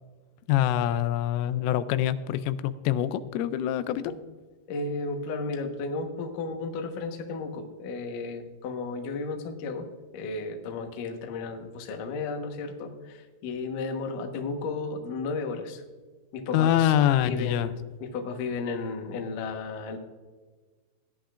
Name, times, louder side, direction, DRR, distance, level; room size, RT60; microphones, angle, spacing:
voice 1, 0.5-4.1 16.5-17.7, left 11 dB, 85° left, 12 dB, 3.1 m, -25 dB
voice 2, 4.7-9.9 10.1-15.8 16.3-20.0, left 3 dB, 70° left, 3 dB, 2.1 m, -34 dB
17.0 x 10.5 x 2.5 m, 1.3 s
omnidirectional pair, 5.7 m